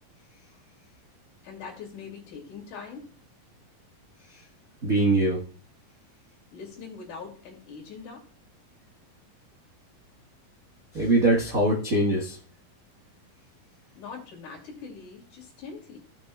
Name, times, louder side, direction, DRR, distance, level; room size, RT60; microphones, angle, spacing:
voice 1, 1.4-3.1 6.5-8.2 14.0-16.0, left 5 dB, 60° left, 0 dB, 3.6 m, -42 dB
voice 2, 4.8-5.4 10.9-12.4, right 1 dB, 70° right, -2 dB, 0.8 m, -22 dB
16.0 x 6.0 x 2.3 m, 0.43 s
omnidirectional pair, 4.1 m